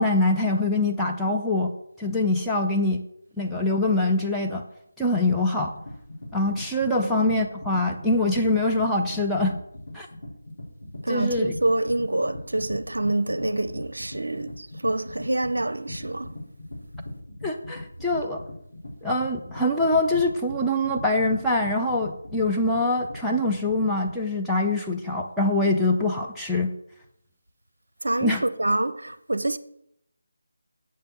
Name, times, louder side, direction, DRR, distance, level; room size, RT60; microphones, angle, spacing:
voice 1, 0.0-1.7 2.0-3.0 3.4-4.6 5.0-5.7 6.3-9.6 9.9-10.1 11.1-11.5 17.4-18.4 19.0-26.7 28.2-28.4, left 2 dB, ahead, 0.6 m, -24 dB
sound 1, 5.7-24.2, left 1 dB, 65° left, 4.4 m, -40 dB
voice 2, 11.0-16.4 28.0-29.6, right 2 dB, 70° right, 0.6 m, -26 dB
7.5 x 5.3 x 7.3 m
figure-of-eight pair, 155°, 0 cm